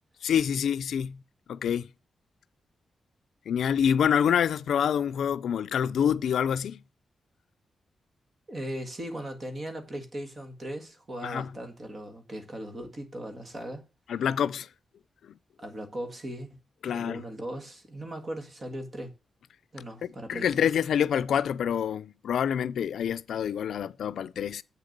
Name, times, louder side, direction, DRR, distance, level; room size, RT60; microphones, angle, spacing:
voice 1, 0.2-1.2 1.5-1.9 3.5-6.8 11.2-11.5 14.1-14.7 15.2-15.4 16.8-17.2 20.0-24.6, left 8 dB, 85° left, 0.4 m, -27 dB
voice 2, 8.5-13.8 15.6-16.6 16.9-19.1 19.7-20.6, right 1 dB, 30° right, 1.7 m, -38 dB
7.9 x 6.8 x 6.6 m
wide cardioid pair, 170°, 0 cm